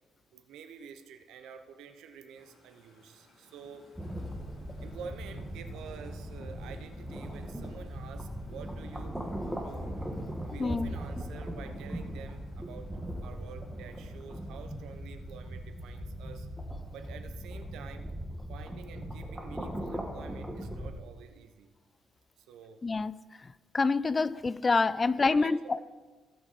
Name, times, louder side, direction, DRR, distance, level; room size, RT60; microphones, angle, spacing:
voice 1, 0.3-3.9 4.8-9.9 10.4-12.9 13.2-16.5 16.9-18.1 18.5-21.7 22.4-22.9 25.0-25.8, right 6 dB, 85° right, 0.9 m, -48 dB
sound 1, 2.3-17.9, left 1 dB, 70° left, 3.7 m, -60 dB
sound 2, 3.9-20.9, equal, 5° right, 1.5 m, -39 dB
voice 2, 10.6-10.9 22.8-23.2 23.7-25.8, left 4 dB, 30° left, 0.3 m, -27 dB
17.0 x 5.9 x 4.2 m
cardioid pair, 90°, 0 cm